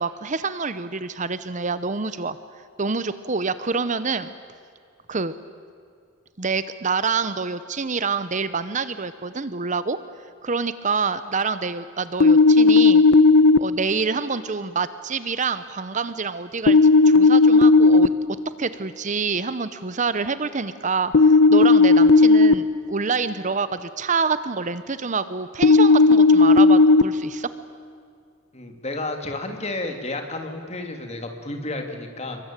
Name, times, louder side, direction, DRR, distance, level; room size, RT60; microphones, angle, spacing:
voice 1, 0.0-2.4 2.8-4.3 5.1-5.3 6.4-10.0 10.4-13.0 13.6-18.1 18.6-27.5, right 4 dB, 35° right, 13 dB, 0.8 m, -27 dB
sound 1, 12.2-13.6 16.7-18.1 21.1-22.5 25.6-27.0, left 3 dB, 75° left, 0.9 m, -13 dB
voice 2, 28.5-32.4, left 2 dB, 30° left, 5 dB, 3.0 m, -31 dB
27.0 x 23.5 x 9.0 m, 2.3 s
head